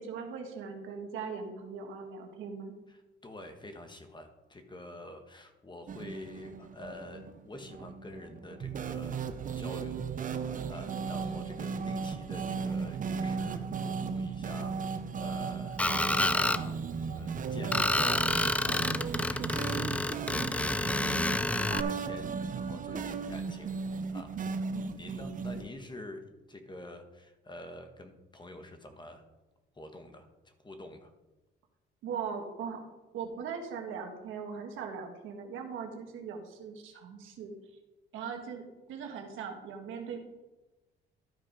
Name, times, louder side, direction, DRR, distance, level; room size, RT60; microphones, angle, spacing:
voice 1, 0.0-2.7 24.7-25.6 32.0-32.8 33.1-37.6 38.1-40.2, right 6 dB, 85° right, 4 dB, 1.5 m, -40 dB
voice 2, 2.9-9.2 9.5-10.0 10.4-16.8 17.1-18.3 18.6-21.1 21.7-23.7 24.1-24.3 25.0-29.2 29.7-31.1, left 1 dB, 20° left, 6 dB, 1.4 m, -47 dB
sound 1, 5.9-25.7, right 5 dB, 40° right, 0.7 m, -36 dB
Screech, 15.8-16.6 17.7-21.8, left 2 dB, 5° left, 0.3 m, -29 dB
12.5 x 4.9 x 5.1 m, 1.1 s
cardioid pair, 90°, 20 cm